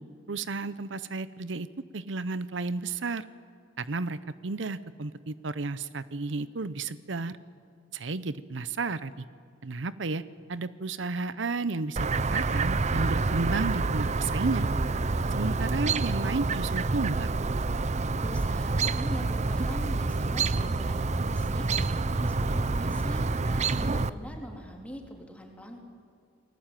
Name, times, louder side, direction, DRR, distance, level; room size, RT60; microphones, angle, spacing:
voice 1, 0.3-1.7 1.9-3.2 3.8-7.4 7.9-9.2 9.6-10.2 10.5-14.7 15.3-17.3, right 3 dB, 75° right, 15 dB, 0.8 m, -32 dB
Chirp tweet, 12.0-24.1, right 3 dB, 40° right, 0.6 m, -27 dB
voice 2, 18.1-21.7 22.2-25.8, equal, 5° left, 1 dB, 3.6 m, -43 dB
29.0 x 20.0 x 9.1 m, 2.4 s
head